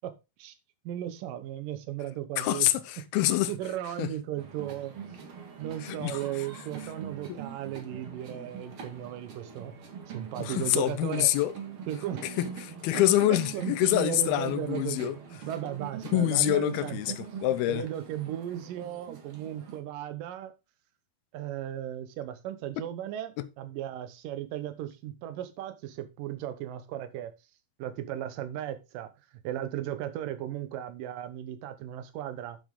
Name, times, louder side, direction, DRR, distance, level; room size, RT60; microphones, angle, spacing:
voice 1, 0.9-2.7 3.5-4.9 5.6-9.7 10.1-11.3 11.9-12.3 13.3-17.0 17.7-20.5 21.3-27.3 27.8-29.1 29.4-32.6, right 11 dB, 70° right, 2.6 m, -36 dB
voice 2, 2.4-3.5 4.0-4.1 5.8-6.2 7.3-7.4 10.4-11.5 12.4-15.2 16.1-17.9 23.4-23.5, left 14 dB, 85° left, 2.7 m, -26 dB
sound 1, 4.4-19.8, right 7 dB, 45° right, 2.0 m, -43 dB
10.0 x 7.1 x 3.8 m
omnidirectional pair, 4.3 m